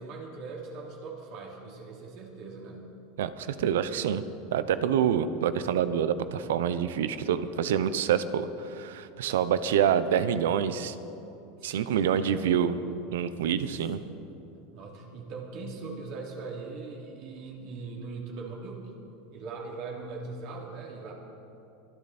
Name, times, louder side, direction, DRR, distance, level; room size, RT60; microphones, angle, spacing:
voice 1, 0.0-2.8 11.6-12.5 13.1-13.5 14.0-14.1 14.7-18.9 19.3-21.1, right 3 dB, 55° right, -2 dB, 3.1 m, -41 dB
voice 2, 3.2-4.2 4.5-10.9 11.6-12.8 13.1-14.0, right 8 dB, 85° right, 13 dB, 0.8 m, -27 dB
24.0 x 10.5 x 4.3 m, 2.8 s
supercardioid pair, 120°, 0 cm